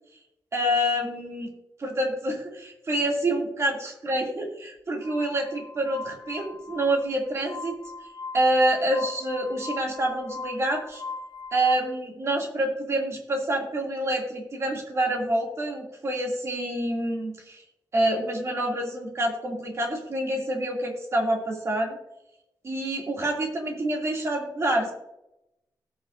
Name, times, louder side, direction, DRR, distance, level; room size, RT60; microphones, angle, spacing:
voice 1, 0.5-1.5 1.8-7.7 8.3-11.0 11.5-17.6 17.9-22.0 22.6-24.9, right 1 dB, 40° right, 0 dB, 2.7 m, -27 dB
Glass, 5.0-11.7, left 3 dB, 80° left, 2.0 m, -40 dB
18.5 x 6.5 x 2.7 m, 0.85 s
wide cardioid pair, 140°, 7 cm